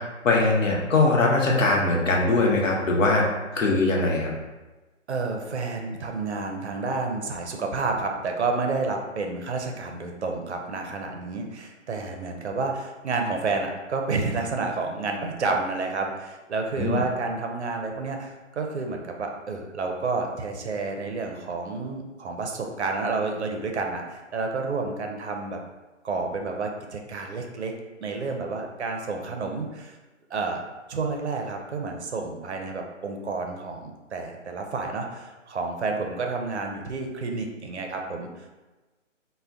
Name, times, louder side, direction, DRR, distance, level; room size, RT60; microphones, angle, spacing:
voice 1, 0.2-3.3 3.5-4.3 16.8-17.0, left 2 dB, 75° left, -1 dB, 0.8 m, -21 dB
voice 2, 5.1-25.6 26.0-27.7 28.0-30.0 30.3-30.6 30.9-38.3, right 3 dB, 60° right, 3 dB, 0.5 m, -30 dB
2.5 x 2.1 x 3.3 m, 1.2 s
hypercardioid pair, 175°, 39 cm